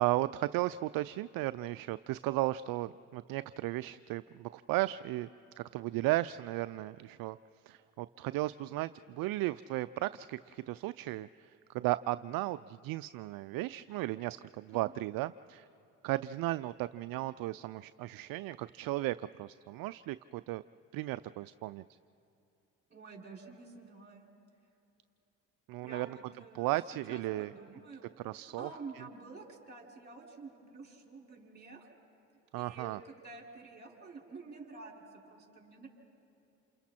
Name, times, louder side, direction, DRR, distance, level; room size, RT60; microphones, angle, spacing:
voice 1, 0.0-5.3 5.6-7.4 7.7-15.7 16.0-20.6 20.9-21.8 25.7-26.1 26.5-27.5 28.2-28.7 29.0-29.1 32.5-33.0, right 17 dB, 60° right, 14 dB, 0.5 m, -35 dB
voice 2, 22.9-24.3 25.8-26.8 27.1-31.9 32.6-35.9, right 4 dB, 25° right, -1 dB, 5.3 m, -50 dB
28.5 x 28.0 x 4.4 m, 2.7 s
hypercardioid pair, 65°, 39 cm